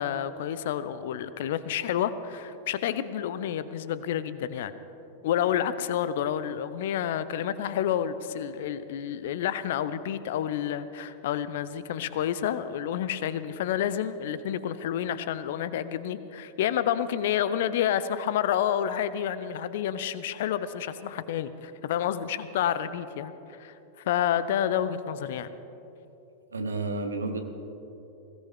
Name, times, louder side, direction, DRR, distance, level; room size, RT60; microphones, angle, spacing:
voice 1, 0.0-4.7 5.2-23.3 23.6-23.7 24.0-25.5, left 10 dB, 55° left, 14 dB, 0.7 m, -29 dB
voice 2, 26.5-27.4, right 3 dB, 75° right, 6 dB, 1.3 m, -31 dB
21.0 x 17.0 x 3.7 m, 3.0 s
figure-of-eight pair, 90°, 0 cm